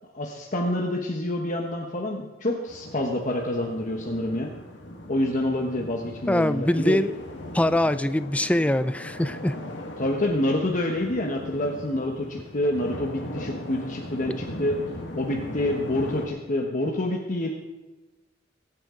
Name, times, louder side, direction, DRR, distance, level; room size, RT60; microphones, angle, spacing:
voice 1, 0.1-4.5 5.1-7.0 10.0-14.8 15.1-17.5, left 1 dB, 40° left, 0 dB, 1.2 m, -27 dB
sound 1, 2.7-16.3, left 1 dB, 65° left, 1.8 m, -39 dB
voice 2, 6.3-7.1 7.5-9.5, left 1 dB, 5° left, 12 dB, 0.4 m, -23 dB
23.0 x 8.9 x 3.8 m, 1.1 s
head